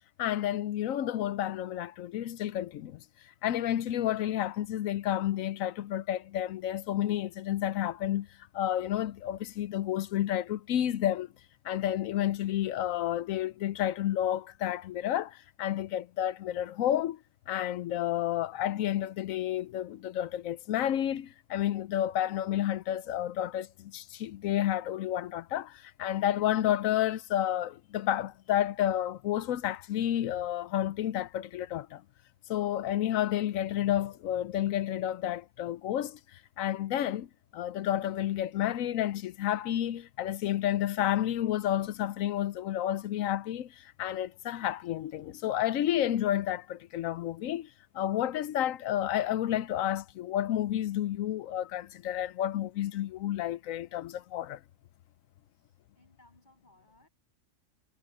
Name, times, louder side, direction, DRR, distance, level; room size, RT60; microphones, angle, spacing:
voice 1, 0.2-3.0 3.4-8.3 8.5-11.3 11.6-17.2 17.5-32.0 32.5-36.2 36.6-37.3 37.5-47.7 47.9-54.6, left 12 dB, 80° left, 1.0 m, -30 dB
voice 2, 55.5-57.1, left 1 dB, 35° left, 7.3 m, -63 dB
omnidirectional pair, 1.4 m